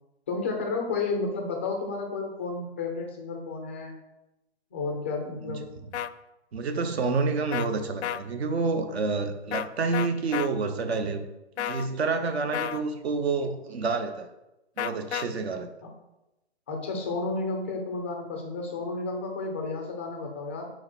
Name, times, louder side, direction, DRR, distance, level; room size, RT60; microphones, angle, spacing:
voice 1, 0.3-3.9 4.7-5.7 15.8-15.9 16.7-20.7, left 3 dB, 10° left, 2 dB, 0.3 m, -32 dB
sound 1, 5.9-6.1 7.5-7.7 8.0-8.2 9.5-9.7 9.9-10.5 11.6-11.9 12.5-12.8 14.8-15.2, left 10 dB, 80° left, 0.5 m, -30 dB
voice 2, 6.5-11.2 11.6-14.3 14.8-15.7, right 4 dB, 70° right, 7 dB, 0.9 m, -28 dB
4.7 x 4.4 x 5.9 m, 0.96 s
hypercardioid pair, 145°, 33 cm